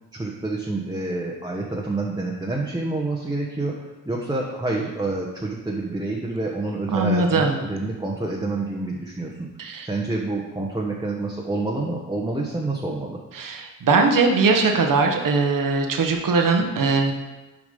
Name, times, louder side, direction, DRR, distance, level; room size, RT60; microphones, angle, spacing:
voice 1, 0.1-9.5 9.8-13.2, right 2 dB, 10° right, -2 dB, 1.2 m, -28 dB
voice 2, 6.9-7.5 9.6-9.9 13.3-17.1, right 4 dB, 60° right, 3 dB, 1.3 m, -20 dB
6.8 x 5.0 x 5.3 m, 1.1 s
supercardioid pair, 50°, 36 cm